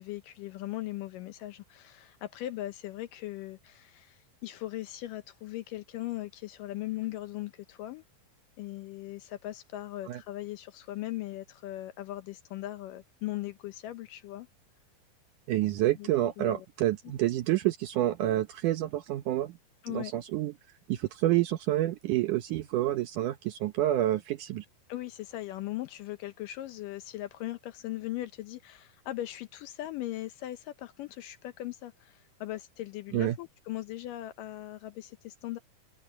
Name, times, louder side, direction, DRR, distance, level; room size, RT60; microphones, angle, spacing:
voice 1, 0.0-8.0 8.6-14.5 16.0-16.1 16.4-16.7 19.8-20.1 24.9-35.6, left 15 dB, 75° left, 2.1 m, -39 dB
voice 2, 15.5-19.6 19.9-20.5 20.9-24.7 33.1-33.4, right 14 dB, 75° right, 2.0 m, -28 dB
omnidirectional pair, 4.4 m